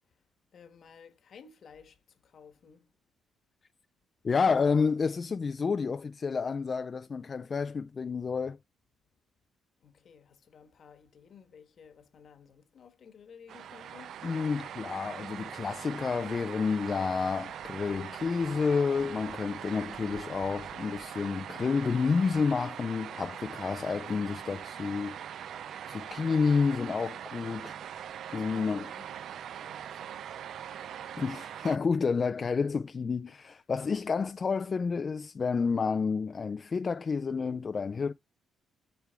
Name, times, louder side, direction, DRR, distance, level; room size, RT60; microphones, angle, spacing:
voice 1, 0.5-3.0 9.8-14.2 28.4-30.3, left 6 dB, 55° left, 1.2 m, -55 dB
voice 2, 4.2-8.6 14.2-25.2 25.9-27.8 28.3-28.8 31.2-38.1, left 5 dB, 40° left, 0.4 m, -30 dB
sound 1, 13.5-31.8, right 9 dB, 70° right, 0.4 m, -42 dB
8.1 x 3.4 x 3.4 m
cardioid pair, 90°, 0 cm